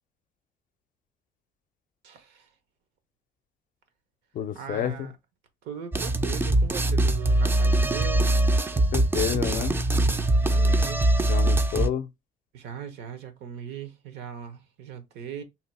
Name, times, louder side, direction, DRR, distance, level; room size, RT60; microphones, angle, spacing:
voice 1, 2.0-2.5 4.5-5.1 5.6-8.4 10.4-11.1 12.5-15.4, right 8 dB, 80° right, 0.9 m, -39 dB
voice 2, 4.3-5.1 8.8-9.8 11.3-12.1, left 9 dB, 55° left, 0.5 m, -29 dB
sound 1, 5.9-11.9, right 1 dB, 15° right, 0.3 m, -22 dB
2.8 x 2.3 x 4.1 m
cardioid pair, 110°, 17 cm